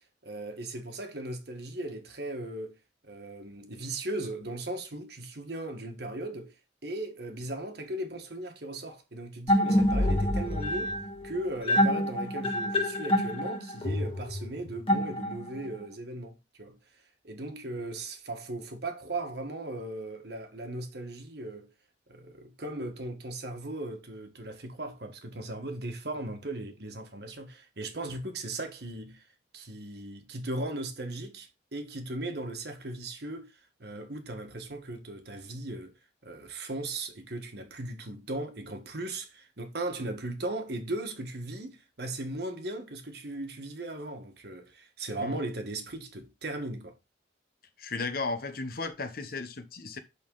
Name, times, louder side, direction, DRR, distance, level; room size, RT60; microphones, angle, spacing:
voice 1, 0.0-2.8 3.0-6.5 6.8-11.0 11.2-16.8 17.2-21.7 22.1-29.2 29.5-33.5 33.8-35.9 36.2-47.0, right 2 dB, 60° right, 1.5 m, -37 dB
sound 1, 9.5-15.7, equal, 30° left, 1.6 m, -27 dB
voice 2, 47.8-50.0, left 3 dB, 50° left, 1.0 m, -35 dB
11.0 x 3.9 x 3.8 m
head